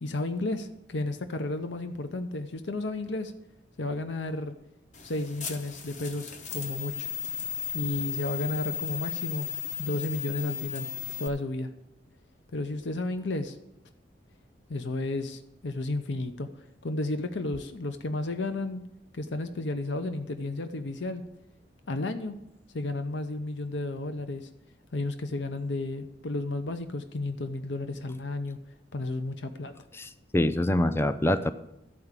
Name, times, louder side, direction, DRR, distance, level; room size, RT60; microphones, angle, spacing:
voice 1, 0.0-3.3 3.8-4.5 5.0-7.1 7.7-9.5 9.8-10.9 11.2-11.7 12.5-13.6 14.7-16.5 16.8-18.8 19.1-21.2 21.9-22.4 22.7-24.5 24.9-28.6 28.9-29.7, left 2 dB, 80° left, 9 dB, 0.8 m, -32 dB
sound 1, 4.9-11.3, left 8 dB, 40° left, 0.8 m, -35 dB
voice 2, 30.0-31.5, left 1 dB, 15° left, 11 dB, 0.4 m, -25 dB
13.0 x 4.9 x 8.2 m, 0.88 s
head